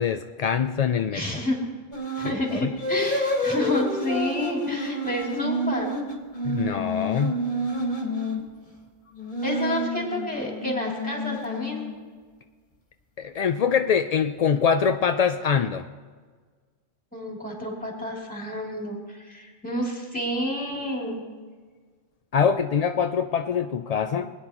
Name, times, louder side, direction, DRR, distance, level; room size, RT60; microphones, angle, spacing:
voice 1, 0.0-1.2 2.2-2.7 6.4-7.4 13.2-15.9 22.3-24.3, left 7 dB, 65° left, 7 dB, 0.4 m, -24 dB
voice 2, 1.1-1.6 2.2-5.9 9.4-11.8 17.1-21.2, left 1 dB, 5° left, -3 dB, 2.9 m, -29 dB
sound 1, 1.9-2.4 2.8-8.4 9.1-12.1, equal, 45° left, 1.9 m, -29 dB
21.0 x 10.0 x 3.0 m, 1.5 s
omnidirectional pair, 1.2 m